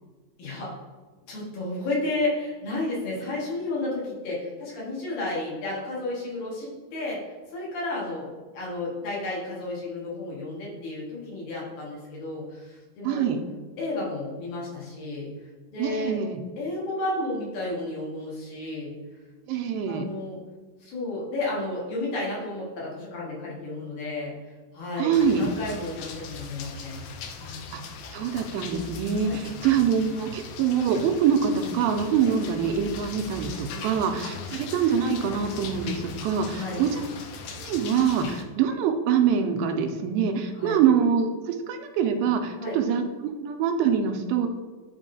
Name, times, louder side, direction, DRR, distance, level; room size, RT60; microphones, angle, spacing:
voice 1, 0.4-0.7 1.3-13.3 13.8-15.3 15.7-16.2 16.6-18.9 19.9-20.4 20.8-27.0 27.4-27.7 29.2-29.4 32.2-32.3 33.7-33.9 34.2-34.4 36.5-36.9 40.5-40.8 42.6-42.8, left 2 dB, 70° left, -5 dB, 3.3 m, -32 dB
voice 2, 13.0-13.4 15.8-16.4 19.5-20.1 25.0-25.5 27.7-27.8 28.1-37.0 37.5-44.5, right 7 dB, 85° right, 5 dB, 2.3 m, -25 dB
sound 1, 25.1-38.4, left 4 dB, 85° left, 1.7 m, -39 dB
9.8 x 3.6 x 2.7 m, 1.4 s
omnidirectional pair, 4.3 m